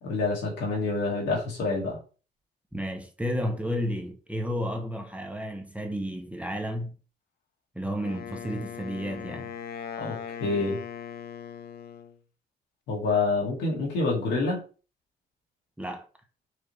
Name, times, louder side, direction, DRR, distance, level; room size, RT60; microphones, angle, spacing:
voice 1, 0.0-2.0 10.0-10.8 12.9-14.6, left 3 dB, 85° left, 1.8 m, -27 dB
voice 2, 2.7-7.0 7.7-9.5 15.8-16.1, equal, 5° right, 0.7 m, -32 dB
Wind instrument woodwind instrument, 8.0-12.2, left 8 dB, 65° left, 0.5 m, -39 dB
4.7 x 2.5 x 3.2 m
cardioid pair, 75°, 18 cm